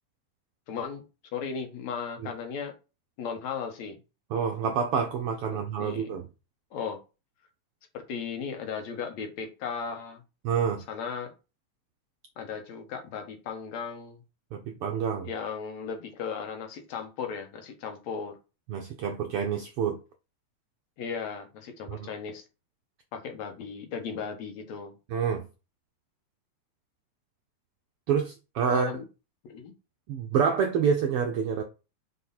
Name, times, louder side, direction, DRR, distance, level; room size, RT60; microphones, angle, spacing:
voice 1, 0.7-1.0 1.3-2.7 3.2-4.0 5.5-6.1 6.7-7.0 7.9-10.2 10.9-11.3 12.4-14.2 15.2-18.4 21.0-22.4 23.1-25.0 28.7-29.0 29.5-29.7, left 6 dB, 70° left, 2.4 m, -36 dB
voice 2, 4.3-6.3 10.4-10.8 14.5-15.3 18.7-20.0 21.9-22.1 25.1-25.5 28.1-28.9 30.1-31.6, right 7 dB, 75° right, 1.3 m, -27 dB
5.7 x 4.5 x 4.2 m
omnidirectional pair, 3.4 m